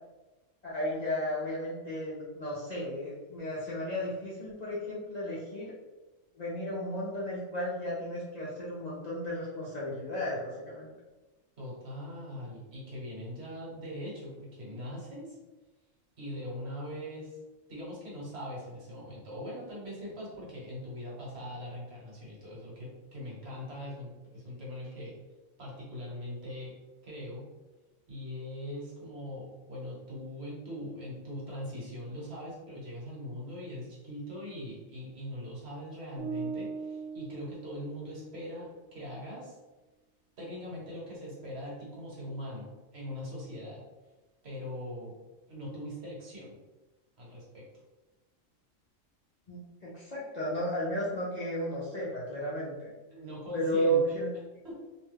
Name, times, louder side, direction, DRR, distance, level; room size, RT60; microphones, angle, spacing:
voice 1, 0.6-5.7 6.4-10.9 49.5-52.9 53.5-54.3, equal, 60° left, -7 dB, 0.4 m, -33 dB
voice 2, 11.6-15.4 16.2-17.4 17.7-25.1 25.6-26.7 27.0-27.4 28.1-39.6 40.4-43.8 44.4-45.1 45.5-46.6 47.2-47.6 53.1-54.2 54.6-54.7, left 1 dB, 55° right, -5 dB, 1.2 m, -41 dB
sound 1, 36.2-38.4, right 5 dB, 10° left, 0.7 m, -39 dB
2.5 x 2.2 x 3.2 m, 1.1 s
omnidirectional pair, 1.3 m